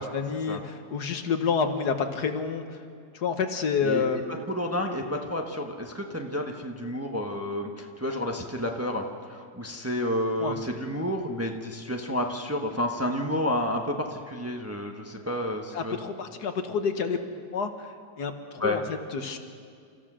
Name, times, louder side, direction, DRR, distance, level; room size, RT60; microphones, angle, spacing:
voice 1, 0.0-2.8 3.1-4.2 10.4-10.5 15.7-17.2 17.5-17.9 18.2-19.4, left 6 dB, 65° left, 7 dB, 1.7 m, -29 dB
voice 2, 4.5-16.0 18.6-18.8, left 1 dB, 10° right, 2 dB, 1.1 m, -30 dB
29.5 x 14.5 x 6.3 m, 2.3 s
omnidirectional pair, 1.9 m